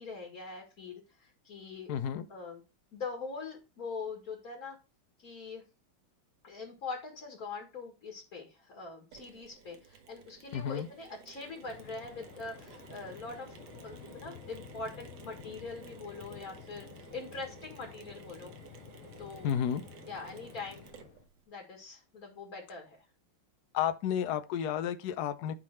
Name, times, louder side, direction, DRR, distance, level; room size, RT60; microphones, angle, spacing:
voice 1, 0.0-1.9 2.3-2.6 2.9-4.8 5.2-5.6 6.4-13.5 13.8-18.5 19.2-19.5 20.1-20.8 21.5-23.0, left 4 dB, 45° left, 1.9 m, -43 dB
voice 2, 1.9-2.3 10.5-10.9 19.4-19.8 23.7-25.5, left 9 dB, 65° left, 1.1 m, -31 dB
Mechanisms, 9.1-21.4, right 7 dB, 65° right, 1.6 m, -54 dB
Waves surf, 11.6-21.3, left 9 dB, 85° left, 1.7 m, -52 dB
9.7 x 3.8 x 4.4 m
omnidirectional pair, 2.3 m